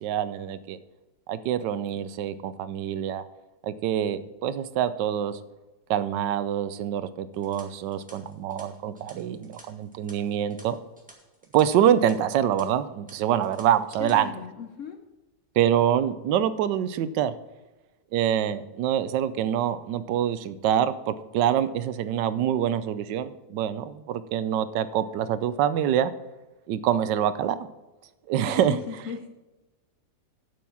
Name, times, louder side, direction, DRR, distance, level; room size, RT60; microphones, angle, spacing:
voice 1, 0.0-0.8 1.3-3.2 3.6-5.4 5.9-10.8 11.5-14.3 15.6-17.3 18.1-26.1 26.7-27.6 28.3-28.8, right 10 dB, 90° right, 14 dB, 1.3 m, -25 dB
sound 1, 7.3-11.6 11.9-12.1 12.6-12.7 13.1-13.6 13.9-14.2, right 1 dB, 5° right, 1.5 m, -52 dB
voice 2, 14.0-15.0 28.5-28.6 28.9-29.3, left 7 dB, 60° left, 6 dB, 0.9 m, -37 dB
7.6 x 7.1 x 7.1 m, 1.1 s
omnidirectional pair, 1.9 m